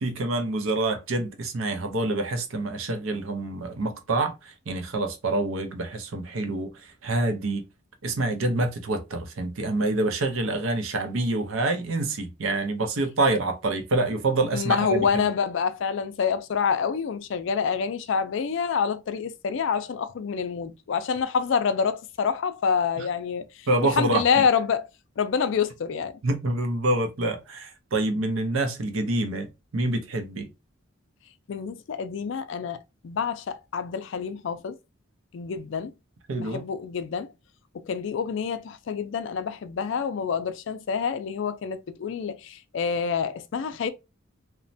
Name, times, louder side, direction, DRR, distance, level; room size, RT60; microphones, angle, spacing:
voice 1, 0.0-7.6 8.0-15.3 23.0-23.1 23.7-24.4 26.2-29.5 29.7-30.5 36.3-36.6, right 2 dB, 75° right, 0.6 m, -27 dB
voice 2, 14.5-23.5 24.0-24.8 25.2-26.2 31.5-32.8 33.0-34.7 35.3-35.9 36.4-37.3 37.7-43.9, left 6 dB, 60° left, 0.3 m, -27 dB
3.1 x 2.1 x 2.6 m
head